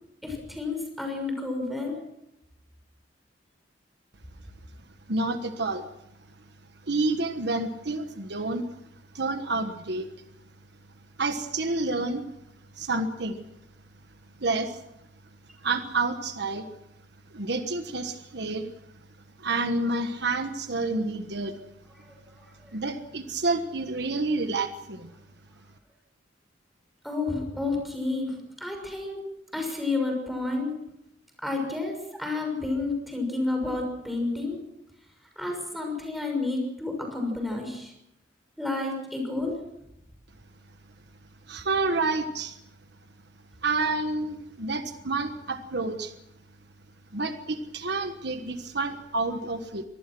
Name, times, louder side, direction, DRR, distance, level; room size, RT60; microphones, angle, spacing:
voice 1, 0.2-2.0 27.0-29.2 29.5-30.7 31.4-34.6 35.4-37.9 38.6-39.5, left 3 dB, ahead, 2 dB, 6.4 m, -30 dB
voice 2, 5.1-5.9 6.9-8.7 9.1-10.1 11.2-12.2 12.8-13.4 14.4-14.8 15.6-16.6 17.3-18.7 19.4-21.5 22.7-25.1 41.5-42.6 43.6-46.1 47.1-49.8, right 3 dB, 65° right, 8 dB, 1.4 m, -29 dB
25.0 x 19.5 x 6.2 m, 0.84 s
head